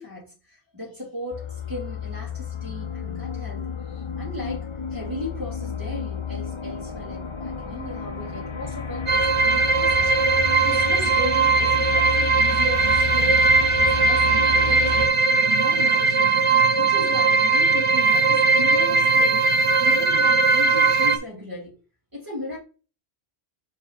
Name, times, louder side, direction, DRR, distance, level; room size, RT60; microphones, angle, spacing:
voice 1, 0.0-10.1 10.6-15.2 15.4-19.5 19.8-21.7 22.1-22.6, left 2 dB, 20° right, 3.4 m, -37 dB
sound 1, 1.3-15.1, left 6 dB, 40° left, 0.5 m, -31 dB
sound 2, 9.1-21.2, right 4 dB, 40° right, 0.5 m, -19 dB
5.0 x 4.5 x 4.2 m
omnidirectional pair, 1.1 m